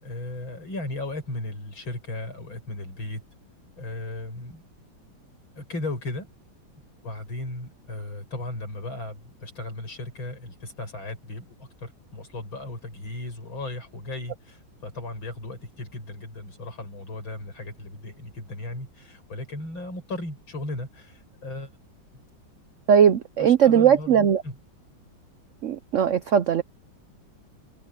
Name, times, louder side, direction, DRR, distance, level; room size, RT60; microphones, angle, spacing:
voice 1, 0.0-3.2 3.8-4.6 5.6-6.3 7.0-21.7 23.4-24.6, left 2 dB, 80° left, 8.3 m, -36 dB
voice 2, 22.9-24.4 25.6-26.6, right 8 dB, 85° right, 0.6 m, -19 dB
omnidirectional pair, 2.1 m